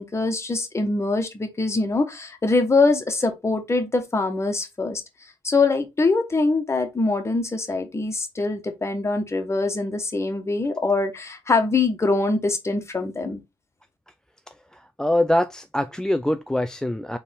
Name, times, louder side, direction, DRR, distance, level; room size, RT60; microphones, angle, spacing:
voice 1, 0.0-5.0 5.4-13.4, left 3 dB, 30° left, 1.3 m, -23 dB
voice 2, 15.0-17.2, left 1 dB, 5° left, 0.3 m, -23 dB
4.1 x 3.5 x 3.5 m
cardioid pair, 75°, 10 cm